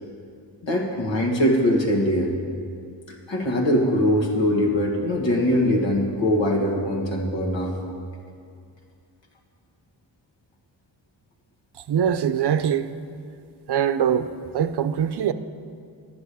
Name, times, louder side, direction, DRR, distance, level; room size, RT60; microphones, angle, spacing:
voice 1, 0.6-2.3 3.3-7.8, equal, 85° left, 0 dB, 1.9 m, -22 dB
voice 2, 11.9-12.9 13.7-15.3, right 8 dB, 65° right, 11 dB, 0.6 m, -23 dB
10.5 x 6.9 x 8.3 m, 2.3 s
wide cardioid pair, 85°, 43 cm